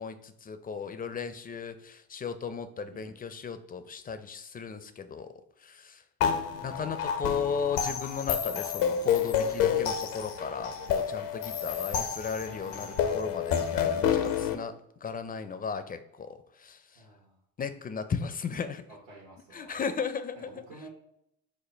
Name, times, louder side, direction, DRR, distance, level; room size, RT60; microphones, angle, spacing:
voice 1, 0.0-5.3 5.6-6.0 6.6-14.7 15.0-17.0 17.6-18.8 19.5-20.6, left 6 dB, 25° left, 10 dB, 0.5 m, -36 dB
sound 1, 6.2-14.5, left 8 dB, 75° left, 0.7 m, -29 dB
voice 2, 6.2-6.6 17.0-17.4 18.9-19.7 20.3-20.9, right 2 dB, 65° right, -3 dB, 1.1 m, -51 dB
5.1 x 2.2 x 4.3 m, 0.77 s
hypercardioid pair, 65°, 35 cm